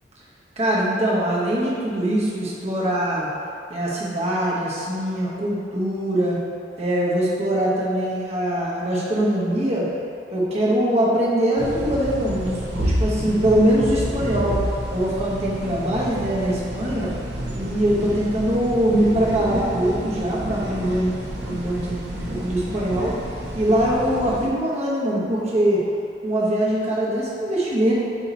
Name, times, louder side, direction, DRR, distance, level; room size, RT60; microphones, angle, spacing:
voice 1, 0.6-3.3 3.7-6.4 6.8-9.9 10.3-14.6 14.9-17.1 17.5-21.1 21.4-23.2 23.5-25.8 26.2-27.9, right 1 dB, 35° right, -6 dB, 1.1 m, -22 dB
sound 1, 11.6-24.5, equal, 60° right, 0.8 m, -29 dB
8.2 x 3.0 x 4.0 m, 2.5 s
head